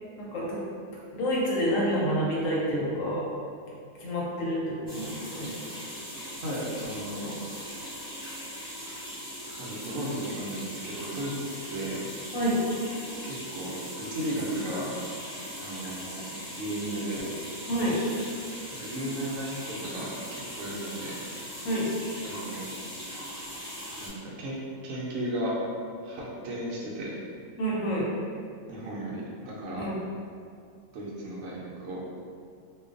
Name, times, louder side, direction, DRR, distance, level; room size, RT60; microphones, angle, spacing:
voice 1, 0.2-0.6 1.1-3.2 4.0-5.6 6.7-6.8 12.3-12.6 17.7-18.0 21.6-21.9 27.6-28.1 29.7-29.9, equal, 70° left, -5 dB, 0.9 m, -28 dB
sound 1, 4.9-24.1, equal, 15° left, 1.1 m, -40 dB
voice 2, 6.4-7.4 9.6-12.0 13.2-15.0 15.6-16.3 16.6-17.3 18.8-21.2 22.2-22.6 24.0-24.6 24.8-25.6 26.0-27.1 28.7-29.9 30.9-32.0, right 1 dB, 70° right, -5 dB, 0.9 m, -35 dB
2.5 x 2.2 x 2.4 m, 2.3 s
omnidirectional pair, 1.6 m